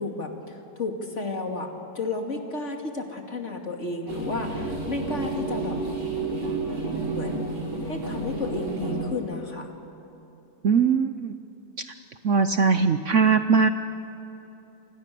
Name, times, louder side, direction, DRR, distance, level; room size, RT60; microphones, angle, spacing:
voice 1, 0.0-5.8 7.1-7.4 7.8-9.7, left 3 dB, 45° left, 2 dB, 2.7 m, -32 dB
sound 1, 4.1-9.1, right 2 dB, 90° right, 6.2 m, -30 dB
voice 2, 10.6-11.3 12.2-13.7, right 5 dB, 55° right, 9 dB, 1.0 m, -20 dB
29.5 x 25.5 x 6.9 m, 2.9 s
omnidirectional pair, 1.8 m